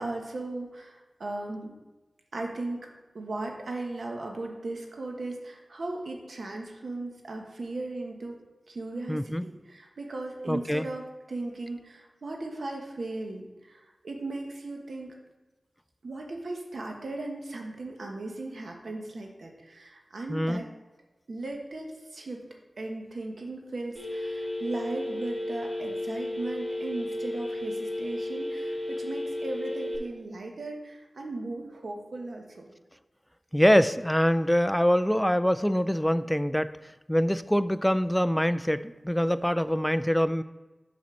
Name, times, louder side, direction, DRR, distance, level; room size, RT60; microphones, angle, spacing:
voice 1, 0.0-1.7 2.3-2.9 3.1-8.4 8.7-15.2 16.0-20.6 21.3-22.4 22.8-32.6, right 2 dB, 75° right, 1 dB, 1.3 m, -37 dB
voice 2, 9.1-9.4 10.5-10.9 20.3-20.6 33.5-36.7 37.1-40.4, equal, 5° left, 13 dB, 0.4 m, -24 dB
Telephone, 24.0-30.0, left 1 dB, 15° right, 2.7 m, -33 dB
7.0 x 4.3 x 6.3 m, 1.2 s
cardioid pair, 45°, 0 cm